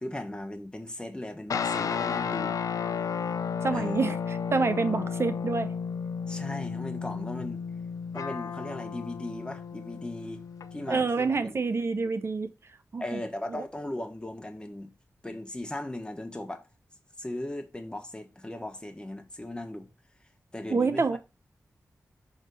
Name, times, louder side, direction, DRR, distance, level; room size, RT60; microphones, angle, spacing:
voice 1, 0.0-2.6 3.7-4.0 6.3-7.6 8.1-10.4 10.7-11.6 13.0-14.9 15.2-16.6 17.2-19.9 20.5-21.2, left 1 dB, 15° left, 1.4 m, -37 dB
sound 1, 1.5-11.2, left 6 dB, 85° left, 0.5 m, -33 dB
voice 2, 3.6-5.7 10.9-12.5 12.9-13.2 13.5-13.6 20.7-21.2, right 4 dB, 50° right, 0.6 m, -27 dB
6.3 x 3.6 x 5.4 m
wide cardioid pair, 70°, 6 cm